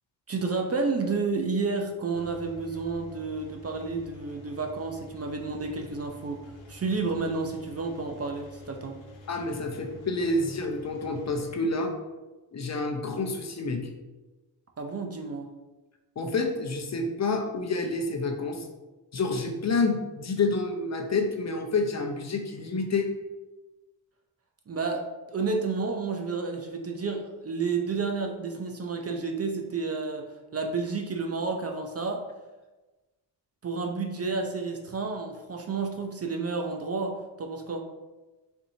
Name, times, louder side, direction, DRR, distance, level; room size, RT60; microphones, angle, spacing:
voice 1, 0.3-6.4 6.7-9.0 14.8-15.5 24.7-30.3 30.5-32.2 33.6-37.8, right 4 dB, 30° right, 3 dB, 0.6 m, -31 dB
Engine, 2.1-11.5, left 1 dB, 80° left, 1.2 m, -48 dB
voice 2, 9.3-11.9 12.5-13.9 16.2-18.7 19.1-23.1, left 3 dB, 35° left, 3 dB, 0.7 m, -28 dB
4.5 x 4.0 x 2.7 m, 1.1 s
cardioid pair, 65°, 46 cm